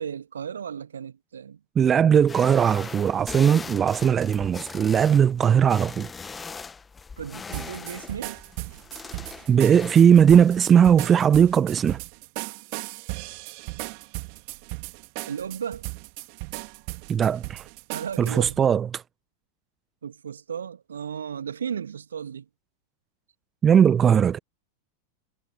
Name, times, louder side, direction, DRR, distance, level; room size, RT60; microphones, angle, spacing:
voice 1, 0.0-1.6 7.2-8.4 15.3-15.9 17.9-18.7 20.0-22.5, right 7 dB, 70° right, 1.9 m, -35 dB
voice 2, 1.8-6.1 9.5-12.0 17.1-17.6 18.2-19.0 23.6-24.4, right 8 dB, 25° right, 1.0 m, -18 dB
sound 1, 2.1-10.6, left 5 dB, 15° left, 1.8 m, -40 dB
sound 2, 7.5-18.6, right 39 dB, 45° right, 4.4 m, -37 dB
figure-of-eight pair, 90°, 0 cm